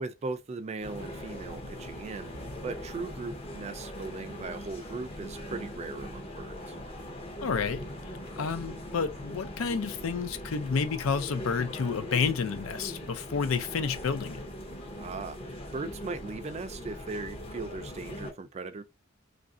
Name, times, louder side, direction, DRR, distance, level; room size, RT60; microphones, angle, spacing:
voice 1, 0.0-2.3 2.6-6.8 15.0-18.8, right 3 dB, 30° right, 0.3 m, -38 dB
sound 1, 0.8-18.3, equal, 30° left, 0.7 m, -41 dB
voice 2, 7.4-7.8 8.4-14.5, left 5 dB, 85° left, 0.5 m, -30 dB
3.1 x 2.5 x 2.5 m
head